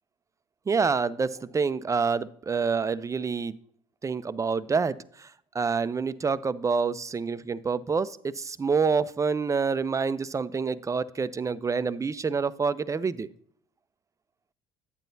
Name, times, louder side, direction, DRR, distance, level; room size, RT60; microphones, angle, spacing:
voice 1, 0.7-3.6 4.0-13.3, right 5 dB, 20° right, 14 dB, 0.4 m, -27 dB
8.9 x 8.9 x 2.7 m, 0.63 s
supercardioid pair, 80°, 18 cm